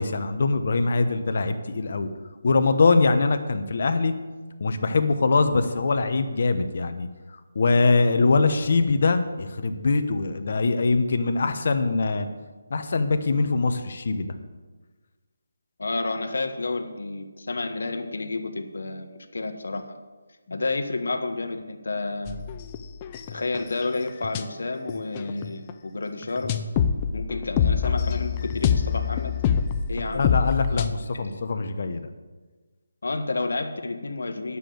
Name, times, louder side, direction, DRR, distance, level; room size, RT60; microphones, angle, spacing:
voice 1, 0.0-2.1 2.4-4.1 4.6-7.1 7.5-12.3 12.7-14.3 30.1-32.1, left 3 dB, 55° left, 8 dB, 1.0 m, -23 dB
voice 2, 15.8-20.0 20.5-22.4 23.3-26.6 27.1-29.3 29.9-30.3 31.0-31.1 33.0-34.6, left 3 dB, 75° left, 6 dB, 1.3 m, -30 dB
sound 1, 22.3-24.4 24.9-25.7 26.2-30.9, left 7 dB, 20° left, 0.5 m, -25 dB
9.7 x 7.1 x 7.9 m, 1.3 s
hypercardioid pair, 170°, 0 cm